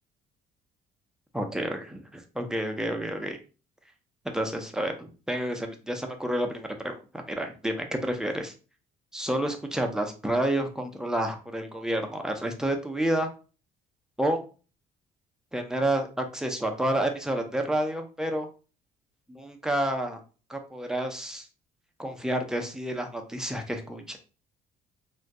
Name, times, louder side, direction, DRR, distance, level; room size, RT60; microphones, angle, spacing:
voice 1, 1.3-3.4 4.2-8.5 9.1-13.3 14.2-14.4 15.5-18.5 19.3-20.2 20.5-21.5 22.0-24.2, right 1 dB, 5° right, 4 dB, 0.5 m, -29 dB
3.5 x 2.2 x 2.6 m, 0.35 s
cardioid pair, 110°, 17 cm